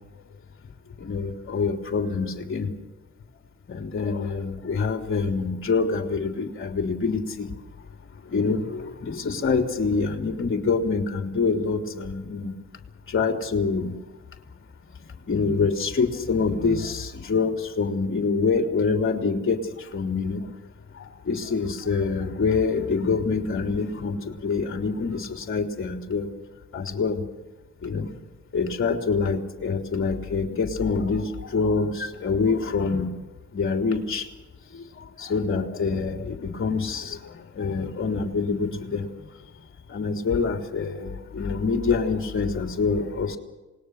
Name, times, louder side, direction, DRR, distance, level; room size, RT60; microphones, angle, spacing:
voice 1, 1.0-2.7 3.7-7.5 8.3-12.6 13.1-13.9 15.3-20.4 20.9-26.3 26.7-27.2 27.8-28.1 28.5-33.1 33.5-34.3 34.7-39.1 39.9-43.4, left 4 dB, 40° left, 3 dB, 3.3 m, -26 dB
27.5 x 20.0 x 6.5 m, 1.1 s
cardioid pair, 90°, 30 cm